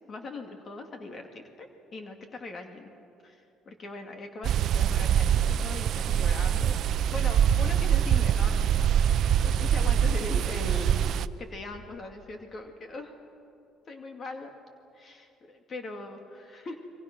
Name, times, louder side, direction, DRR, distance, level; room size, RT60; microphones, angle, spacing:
voice 1, 0.1-2.9 3.2-8.8 9.4-11.0 11.4-13.1 13.9-14.5 14.9-16.8, left 3 dB, 45° left, 4 dB, 2.3 m, -40 dB
sound 1, 4.4-11.3, right 9 dB, 65° right, 0.6 m, -24 dB
29.5 x 23.5 x 6.2 m, 2.6 s
cardioid pair, 100°, 0 cm